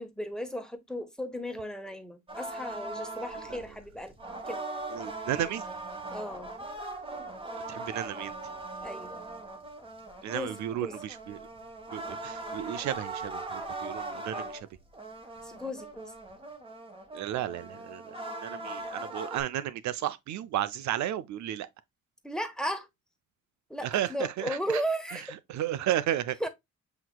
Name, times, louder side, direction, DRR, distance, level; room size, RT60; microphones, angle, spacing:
voice 1, 0.0-4.1 4.5-4.6 6.1-6.5 8.8-9.2 10.2-10.9 15.4-16.1 22.2-22.9 23.7-25.2 26.4-26.5, equal, ahead, 1.1 m, -35 dB
sound 1, 2.3-19.4, right 2 dB, 15° right, 1.3 m, -40 dB
voice 2, 4.9-5.6 7.7-8.3 10.2-11.4 11.9-14.7 17.1-21.7 23.8-24.8 25.1-25.2 25.5-26.4, right 12 dB, 70° right, 0.5 m, -33 dB
7.8 x 2.9 x 2.2 m
cardioid pair, 90°, 30 cm